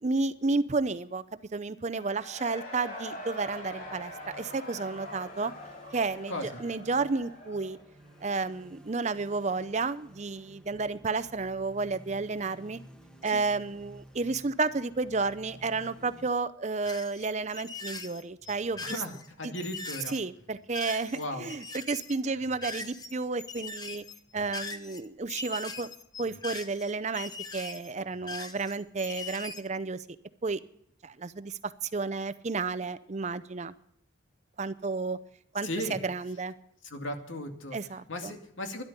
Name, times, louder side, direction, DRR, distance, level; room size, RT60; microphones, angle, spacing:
voice 1, 0.0-1.2 1.5-5.5 5.9-7.8 8.2-12.8 13.2-19.0 19.4-19.5 20.1-24.0 24.3-25.9 26.2-30.0 30.4-30.6 31.0-33.7 34.6-35.2 35.5-36.5 37.7-38.3, right 3 dB, 35° right, 15 dB, 0.6 m, -32 dB
Cheering / Crowd, 1.9-8.6, left 1 dB, 45° left, 3.6 m, -44 dB
sound 1, 3.4-16.3, equal, 5° left, 1.3 m, -54 dB
voice 2, 6.3-6.6 13.3-13.4 18.8-19.1 19.4-20.1 21.1-21.5 35.6-36.0 36.8-37.8 38.1-38.8, left 1 dB, 75° left, 4 dB, 2.3 m, -36 dB
sound 2, 16.8-23.1 23.4-29.6, left 3 dB, 20° left, 1.0 m, -41 dB
12.5 x 11.5 x 6.7 m, 0.70 s
head